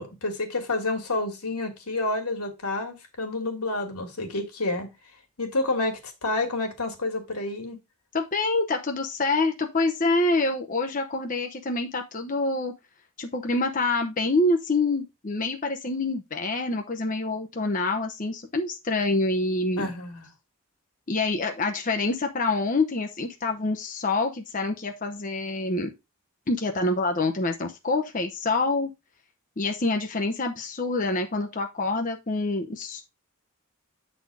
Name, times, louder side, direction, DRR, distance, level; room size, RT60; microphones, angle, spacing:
voice 1, 0.0-4.9 5.4-7.8 19.8-20.3, left 2 dB, 85° left, 2.1 m, -29 dB
voice 2, 8.1-12.7 13.2-19.9 21.1-25.9 26.5-28.9 29.6-33.0, left 2 dB, 35° left, 0.7 m, -26 dB
7.9 x 4.2 x 4.7 m
head